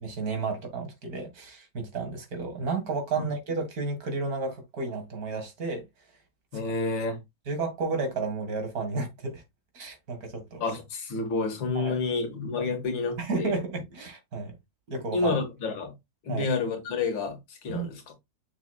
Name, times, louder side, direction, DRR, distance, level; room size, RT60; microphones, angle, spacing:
voice 1, 0.0-5.8 7.5-9.4 9.7-10.6 11.8-11.9 13.2-14.5 14.9-15.4 16.3-16.5 17.7-17.9, right 4 dB, 55° right, 2.1 m, -32 dB
voice 2, 6.5-7.2 10.6-13.6 15.1-16.0 16.2-18.1, left 4 dB, 85° left, 2.3 m, -29 dB
6.7 x 6.2 x 2.3 m
omnidirectional pair, 2.0 m